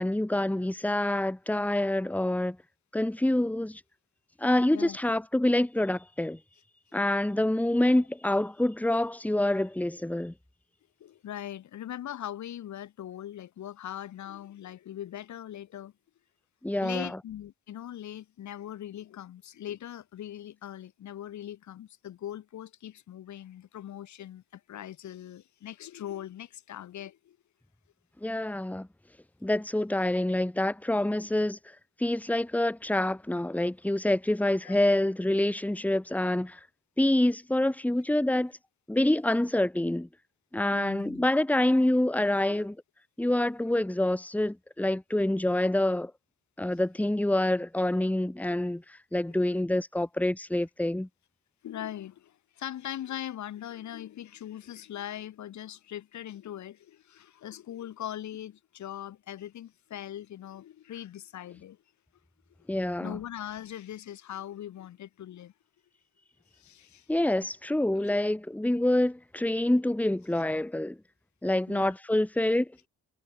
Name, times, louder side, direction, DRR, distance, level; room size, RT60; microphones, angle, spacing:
voice 1, 0.0-2.6 2.9-3.8 4.4-6.4 6.9-10.3 16.6-17.2 28.2-28.9 29.4-31.6 32.0-36.6 37.0-38.5 38.9-40.1 40.5-42.8 43.2-46.1 46.6-48.8 49.1-51.1 62.7-63.2 67.1-71.0 71.4-72.7, left 1 dB, 5° left, 1.9 m, -26 dB
voice 2, 11.0-15.9 16.8-27.4 34.6-34.8 38.3-38.4 40.7-41.3 42.5-42.6 49.4-49.5 51.6-61.8 63.0-65.5 66.6-67.1 71.7-71.9, left 11 dB, 70° left, 2.6 m, -41 dB
cardioid pair, 90°, 30 cm